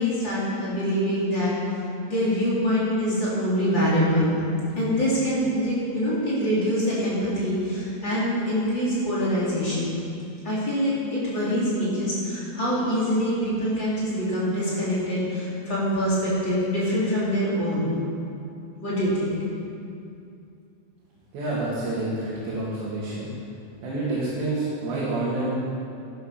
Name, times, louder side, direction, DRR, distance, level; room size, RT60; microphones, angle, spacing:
voice 1, 0.0-1.5 2.1-4.4 4.8-10.0 10.4-17.9 18.8-19.3, equal, 25° left, -9 dB, 3.5 m, -24 dB
voice 2, 21.3-23.3 23.8-25.5, right 2 dB, 70° right, -8 dB, 4.3 m, -28 dB
12.5 x 11.5 x 5.8 m, 2.6 s
omnidirectional pair, 5.3 m